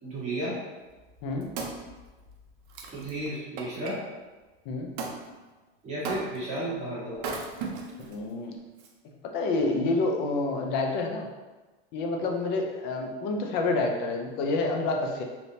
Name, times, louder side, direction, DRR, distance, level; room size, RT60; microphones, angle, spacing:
voice 1, 0.0-0.6 2.9-4.0 5.8-7.3, right 1 dB, 20° right, -9 dB, 1.2 m, -33 dB
Wood, 1.0-4.0 5.0-5.2 6.0-6.6 7.1-8.1 8.8-8.9, right 4 dB, 50° right, 0.6 m, -37 dB
voice 2, 8.0-8.5 9.3-11.3 11.9-15.2, left 3 dB, 35° left, 2 dB, 0.4 m, -28 dB
3.3 x 2.8 x 2.7 m, 1.2 s
supercardioid pair, 145°, 32 cm